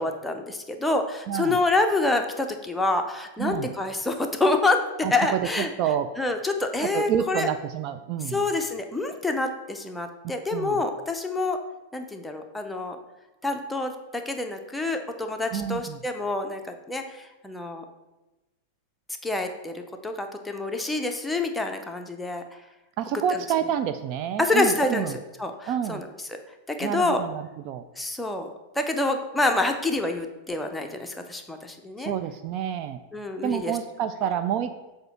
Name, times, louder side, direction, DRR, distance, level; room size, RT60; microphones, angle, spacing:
voice 1, 0.0-4.8 5.1-5.7 6.2-7.5 8.3-11.6 11.9-13.0 13.4-17.8 19.2-22.4 24.4-25.1 25.4-26.1 26.7-27.2 28.0-32.1 33.1-33.8, left 2 dB, 5° left, 5 dB, 0.7 m, -27 dB
voice 2, 1.3-1.6 3.4-3.7 5.0-6.1 6.8-8.5 10.2-10.8 15.5-16.0 23.0-25.2 25.7-26.0 26.8-27.8 32.0-33.0 33.4-34.8, right 9 dB, 40° right, 10 dB, 0.3 m, -28 dB
7.7 x 2.8 x 5.7 m, 1.1 s
figure-of-eight pair, 90°, 0 cm